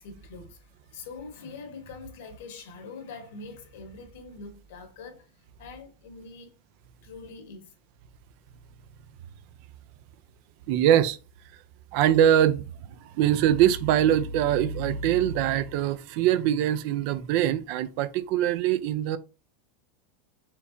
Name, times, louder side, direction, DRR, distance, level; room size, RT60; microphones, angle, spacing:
voice 1, 0.0-6.5 7.0-7.7, left 4 dB, 75° left, 1.4 m, -44 dB
voice 2, 10.7-11.2 11.9-12.6 13.0-19.2, right 11 dB, 55° right, 0.4 m, -23 dB
4.6 x 3.3 x 2.7 m
supercardioid pair, 140°, 0 cm